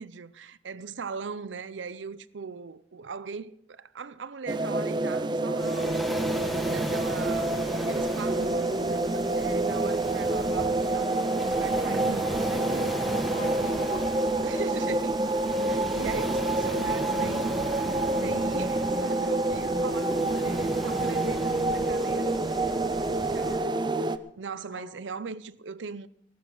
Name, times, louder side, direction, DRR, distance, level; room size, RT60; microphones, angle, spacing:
voice 1, 0.0-6.4 6.7-7.6 7.9-13.0 14.4-15.2 15.7-17.8 18.2-22.7 23.3-23.8 24.4-26.1, right 5 dB, 85° right, 0.6 m, -39 dB
sound 1, 4.5-24.2, right 2 dB, 25° right, 0.5 m, -27 dB
Waves surf, 5.6-23.6, equal, ahead, 1.2 m, -38 dB
voice 2, 13.3-14.9 20.1-20.3 23.3-23.8 24.7-24.9, left 2 dB, 35° left, 2.5 m, -43 dB
17.5 x 14.5 x 3.9 m
head